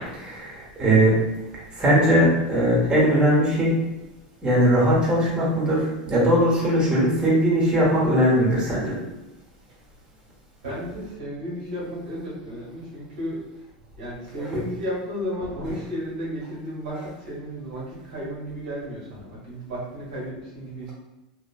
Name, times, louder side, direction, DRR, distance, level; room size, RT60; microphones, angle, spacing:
voice 1, 0.1-1.1 1.7-3.7 4.4-9.0 14.4-14.5, equal, 20° right, -6 dB, 1.1 m, -20 dB
voice 2, 10.6-13.4 14.0-20.9, equal, 85° right, -6 dB, 1.4 m, -33 dB
2.9 x 2.4 x 2.3 m, 0.95 s
hypercardioid pair, 110°, 4 cm